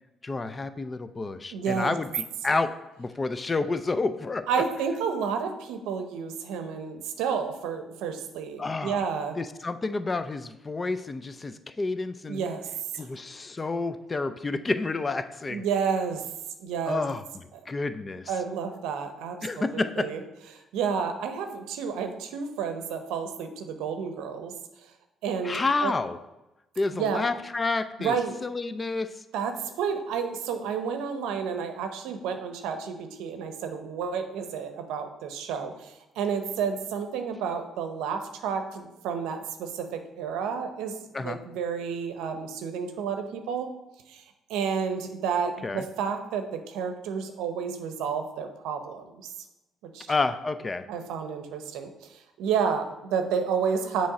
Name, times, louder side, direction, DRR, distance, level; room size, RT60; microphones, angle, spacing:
voice 1, 0.2-4.6 8.6-9.1 9.4-12.5 12.9-15.7 16.9-18.3 19.4-20.1 25.4-26.2 26.8-28.1 28.4-29.2 41.1-41.4 45.6-45.9 50.1-50.9, left 3 dB, 25° left, 11 dB, 0.4 m, -29 dB
voice 2, 1.5-2.0 4.5-9.4 12.3-12.7 12.9-13.1 15.5-16.2 16.6-17.0 17.6-17.7 18.3-20.2 20.5-24.5 25.2-25.9 26.9-27.3 28.0-28.4 29.3-40.9 41.2-43.7 44.1-44.2 44.5-49.3 49.9-50.1 50.9-54.1, right 6 dB, 90° right, 7 dB, 0.6 m, -30 dB
7.0 x 3.1 x 4.8 m, 0.97 s
cardioid pair, 85°, 0 cm